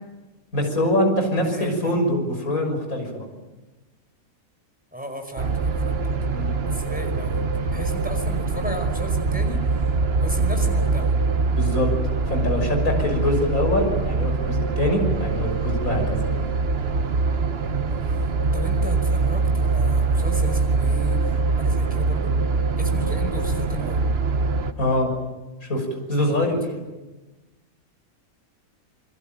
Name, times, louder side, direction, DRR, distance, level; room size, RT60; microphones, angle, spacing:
voice 1, 0.5-3.3 6.3-6.5 11.5-11.9 12.3-16.2 24.8-25.1 25.6-26.6, left 1 dB, 70° left, 3 dB, 6.7 m, -23 dB
voice 2, 1.4-1.9 4.9-6.0 6.6-7.4 7.7-9.6 10.2-11.2 17.9-18.2 18.5-22.3 22.8-24.0 26.2-26.5, right 1 dB, 5° right, 5 dB, 5.2 m, -35 dB
FX Low Baustelle, 5.4-24.7, right 4 dB, 45° right, 1.3 m, -23 dB
28.5 x 22.0 x 9.1 m, 1.2 s
omnidirectional pair, 1.5 m